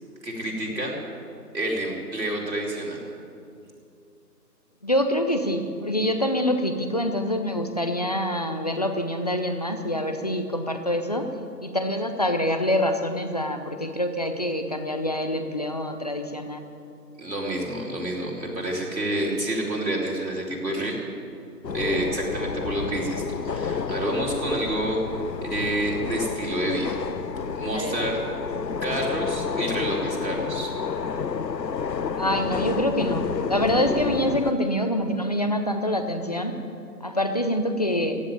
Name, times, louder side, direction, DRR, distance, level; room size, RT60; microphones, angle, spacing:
voice 1, 0.2-1.0 1.5-3.0 17.2-21.0 21.7-25.0 25.4-27.0 27.5-28.2 28.8-30.7, right 1 dB, 85° right, -3 dB, 4.6 m, -28 dB
voice 2, 4.8-11.3 11.6-16.7 27.7-28.1 32.2-36.6 37.0-38.2, left 1 dB, 25° left, 6 dB, 0.7 m, -26 dB
sound 1, 21.6-34.5, left 6 dB, 80° left, 0.9 m, -30 dB
15.5 x 9.2 x 9.6 m, 2.5 s
figure-of-eight pair, 155°, 50 cm